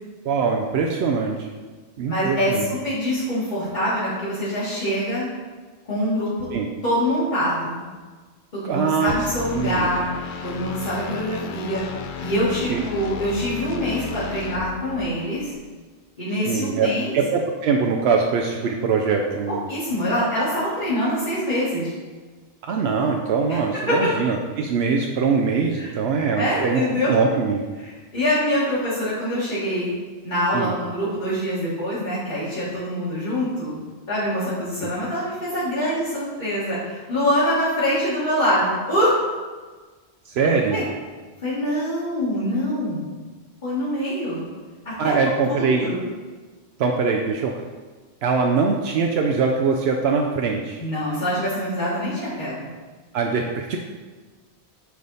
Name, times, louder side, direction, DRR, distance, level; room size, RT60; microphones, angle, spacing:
voice 1, 0.2-1.5 2.0-2.7 6.5-6.7 8.6-9.1 9.5-9.9 12.7-12.8 16.5-16.9 17.1-19.7 22.6-26.8 27.1-27.6 30.5-30.7 34.8-34.9 40.3-40.8 45.0-45.9 46.8-47.6 48.2-50.8 53.1-53.8, right 5 dB, 80° right, 2 dB, 0.8 m, -22 dB
voice 2, 2.1-5.3 5.9-6.3 6.8-7.9 8.5-10.1 10.4-11.8 12.2-15.5 16.2-17.2 19.5-21.9 23.5-23.6 23.9-24.0 25.7-25.9 26.4-27.2 27.8-29.9 30.2-33.7 34.1-39.1 40.7-40.8 41.4-43.0 43.6-44.5 44.8-46.1 50.8-52.7, equal, 45° left, -11 dB, 2.1 m, -24 dB
sound 1, 9.1-15.6, left 6 dB, 60° left, 0.6 m, -34 dB
9.3 x 3.5 x 4.0 m, 1.4 s
omnidirectional pair, 1.1 m